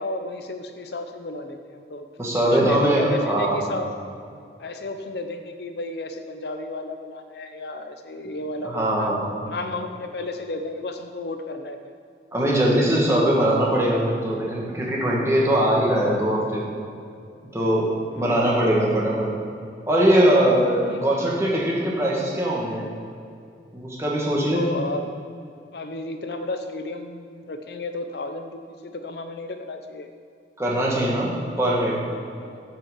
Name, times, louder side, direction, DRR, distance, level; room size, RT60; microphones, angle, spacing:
voice 1, 0.0-2.1 2.4-3.9 4.6-9.1 9.4-11.9 18.2-18.6 20.9-21.2 24.4-25.2 25.7-30.1 32.4-32.6, left 2 dB, 65° left, 6 dB, 0.6 m, -33 dB
voice 2, 2.2-3.6 8.6-9.4 12.3-16.7 17.5-17.9 18.1-19.3 19.9-22.9 23.7-24.6 30.6-31.3 31.6-32.0, right 1 dB, 15° right, -4 dB, 1.9 m, -21 dB
9.0 x 5.9 x 7.1 m, 2.4 s
head